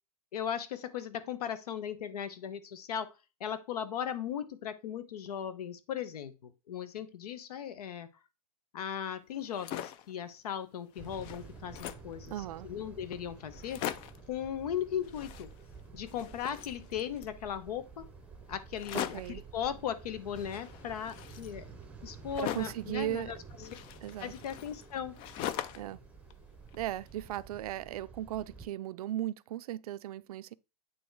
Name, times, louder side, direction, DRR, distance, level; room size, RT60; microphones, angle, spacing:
voice 1, 0.3-3.1 3.4-8.1 8.7-14.0 14.3-15.5 15.9-18.0 18.5-21.7 22.0-23.7 24.2-25.1, left 9 dB, 75° left, 1.1 m, -38 dB
sound 1, 9.4-10.1 10.6-10.7 10.9-12.2 12.8-12.9 13.1-13.2 13.5-14.3 15.0-17.4 18.7-19.4 20.4-22.9 23.6-26.0 26.3-27.2, left 11 dB, 25° left, 0.4 m, -41 dB
sound 2, 11.0-28.7, right 5 dB, 5° right, 0.7 m, -51 dB
voice 2, 12.3-12.7 18.9-19.4 22.4-23.3 24.0-24.3 25.8-26.0 26.7-30.5, right 13 dB, 65° right, 0.5 m, -37 dB
8.8 x 3.0 x 4.6 m
hypercardioid pair, 150°, 20 cm